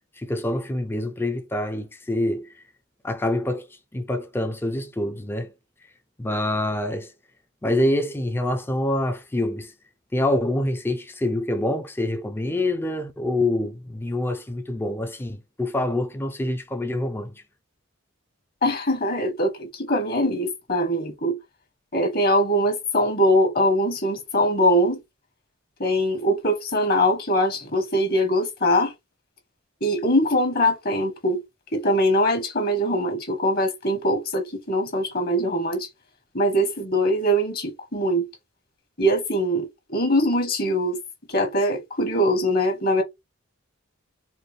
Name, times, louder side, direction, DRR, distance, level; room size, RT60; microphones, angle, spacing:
voice 1, 0.2-2.6 3.0-5.5 6.2-7.1 7.6-9.7 10.1-17.3, left 1 dB, 10° left, 0.4 m, -26 dB
voice 2, 18.6-21.4 21.9-25.0 25.8-28.9 29.8-31.4 31.7-35.9 36.3-38.3 39.0-41.0 41.3-43.0, equal, 45° left, 1.3 m, -22 dB
4.2 x 2.2 x 3.2 m
head